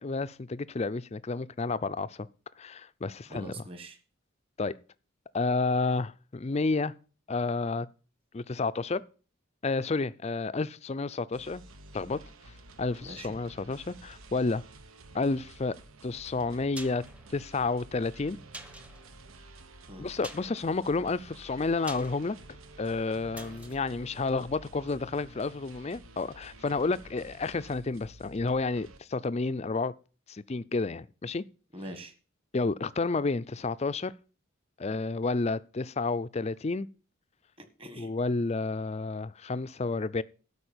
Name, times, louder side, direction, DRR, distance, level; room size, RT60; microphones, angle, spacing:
voice 1, 0.0-2.3 2.6-3.6 4.6-4.8 5.3-6.9 7.3-7.9 8.3-9.0 9.6-11.6 11.9-12.2 12.8-14.6 15.1-15.7 16.0-17.0 17.3-18.4 20.0-22.4 22.8-29.9 30.3-31.4 32.5-34.1 34.8-36.9 38.0-40.2, left 3 dB, 30° left, 0.5 m, -30 dB
voice 2, 3.3-4.0 13.0-13.4 19.9-20.1 31.7-32.1 37.6-38.1, right 1 dB, 25° right, 1.6 m, -43 dB
sound 1, 11.3-29.0, right 2 dB, 85° right, 1.2 m, -51 dB
sound 2, 16.7-25.2 25.5-25.6, right 1 dB, 5° right, 0.8 m, -49 dB
12.5 x 4.9 x 8.8 m
head